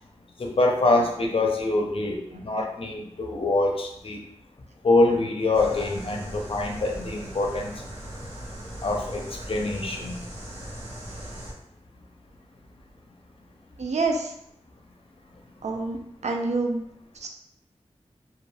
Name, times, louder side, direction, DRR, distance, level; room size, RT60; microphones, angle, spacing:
voice 1, 0.4-4.2 4.8-7.8 8.8-10.2, left 2 dB, 55° left, 1 dB, 0.5 m, -25 dB
sound 1, 5.5-11.5, right 1 dB, 60° right, 0.8 m, -39 dB
voice 2, 13.8-14.3 15.6-16.0 16.2-16.8 17.2-17.3, right 3 dB, 85° right, 3 dB, 0.4 m, -26 dB
2.2 x 2.2 x 3.2 m, 0.74 s
wide cardioid pair, 65°, 11 cm